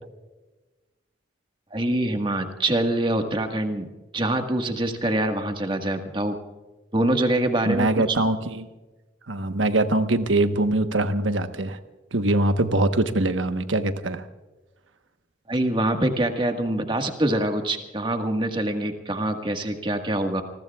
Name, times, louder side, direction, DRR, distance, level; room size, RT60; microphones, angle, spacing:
voice 1, 1.7-3.9 4.1-6.4 6.9-8.2 15.5-20.4, right 1 dB, 25° right, 5 dB, 1.6 m, -25 dB
voice 2, 7.7-8.7 9.3-11.8 12.1-14.2, right 2 dB, 85° right, 8 dB, 1.2 m, -23 dB
29.0 x 20.5 x 2.4 m, 1.2 s
head